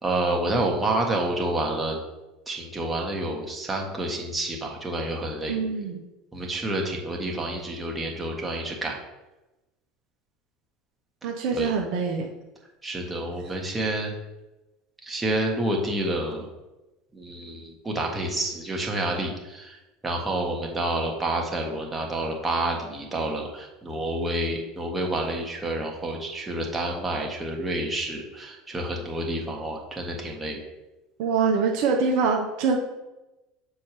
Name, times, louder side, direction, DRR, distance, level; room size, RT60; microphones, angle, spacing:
voice 1, 0.0-2.0 2.5-5.5 6.3-9.0 11.5-11.7 12.8-14.1 15.1-16.5 17.1-19.7 20.0-30.6, right 1 dB, 15° right, 0 dB, 1.4 m, -29 dB
voice 2, 5.5-6.0 11.2-12.3 31.2-32.8, right 5 dB, 65° right, 1 dB, 0.8 m, -24 dB
6.9 x 4.4 x 3.4 m, 1.0 s
hypercardioid pair, 75°, 0 cm